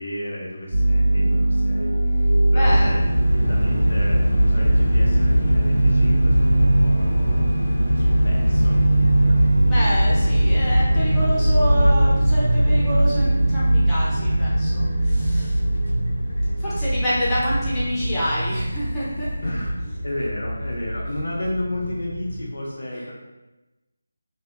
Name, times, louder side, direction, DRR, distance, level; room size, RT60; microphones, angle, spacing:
voice 1, 0.0-7.5 8.0-9.4 19.4-19.7 20.0-23.1, left 1 dB, 65° left, -3 dB, 0.7 m, -32 dB
sound 1, 0.7-20.1, right 1 dB, 65° right, 1.2 m, -21 dB
voice 2, 2.4-2.9 9.6-15.6 16.6-19.3 19.8-19.9 21.1-21.2 22.9-23.1, equal, 10° left, -11 dB, 0.8 m, -28 dB
sound 2, 2.6-22.5, equal, 85° left, 1.0 m, -24 dB
2.7 x 2.4 x 2.5 m, 1.0 s
figure-of-eight pair, 160°, 0 cm